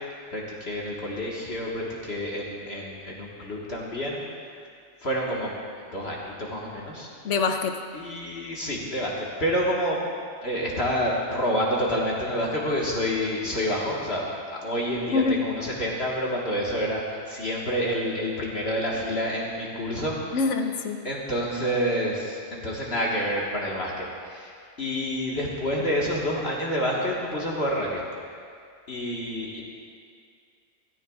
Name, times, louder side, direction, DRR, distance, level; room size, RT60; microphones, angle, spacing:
voice 1, 0.3-4.2 5.0-5.5 5.9-7.1 7.9-10.0 10.4-14.2 14.5-24.5 24.8-28.0 28.9-29.6, equal, 55° left, -4 dB, 1.8 m, -28 dB
voice 2, 7.2-7.7 15.1-15.4 20.3-21.0, left 4 dB, 70° left, 5 dB, 1.1 m, -24 dB
16.5 x 14.5 x 2.4 m, 2.2 s
omnidirectional pair, 1.3 m